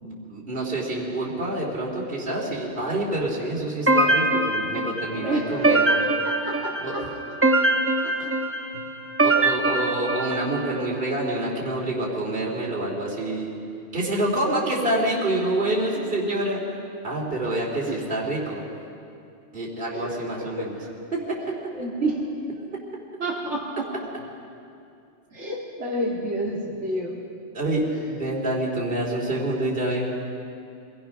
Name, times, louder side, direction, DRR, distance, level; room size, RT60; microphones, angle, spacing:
voice 1, 0.0-5.8 6.8-6.9 9.2-13.6 13.9-16.6 17.0-18.6 19.5-20.8 21.1-21.4 27.5-30.1, right 1 dB, 50° right, -3 dB, 3.2 m, -27 dB
sound 1, 3.9-10.8, right 2 dB, 10° right, 1.1 m, -23 dB
voice 2, 5.2-7.0 8.0-8.1 17.9-18.0 19.9-20.1 21.7-22.3 23.2-23.9 25.3-27.2, right 1 dB, 75° right, -5 dB, 2.4 m, -29 dB
25.5 x 17.5 x 5.8 m, 2.5 s
omnidirectional pair, 1.2 m